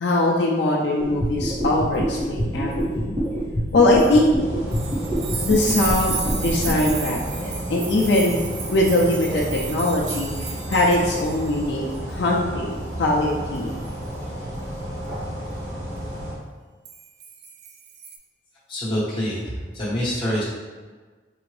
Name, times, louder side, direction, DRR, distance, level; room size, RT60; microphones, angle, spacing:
voice 1, 0.0-3.2 3.7-4.3 5.4-8.4 8.7-13.7, left 1 dB, 80° left, -3 dB, 0.5 m, -21 dB
sound 1, 1.0-6.9, equal, 30° right, 1.4 m, -26 dB
sound 2, 4.4-16.3, right 1 dB, 85° right, 1.2 m, -32 dB
sound 3, 4.7-11.7 11.9-12.2 13.6-13.9 16.9-18.2, right 6 dB, 65° right, 0.5 m, -34 dB
voice 2, 18.7-20.4, equal, 30° left, -7 dB, 1.3 m, -26 dB
4.6 x 2.5 x 3.3 m, 1.4 s
head